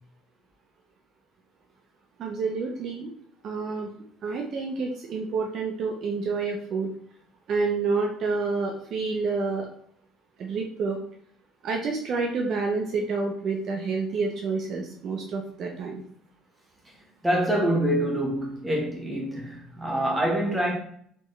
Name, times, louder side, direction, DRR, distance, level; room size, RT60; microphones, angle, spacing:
voice 1, 2.2-3.1 3.4-3.9 4.2-6.9 7.5-9.7 10.4-11.0 11.6-16.0, right 4 dB, 45° right, 0.6 m, -28 dB
voice 2, 17.2-20.7, right 1 dB, 10° right, 1.1 m, -25 dB
4.3 x 3.0 x 3.2 m
cardioid pair, 145°, 0 cm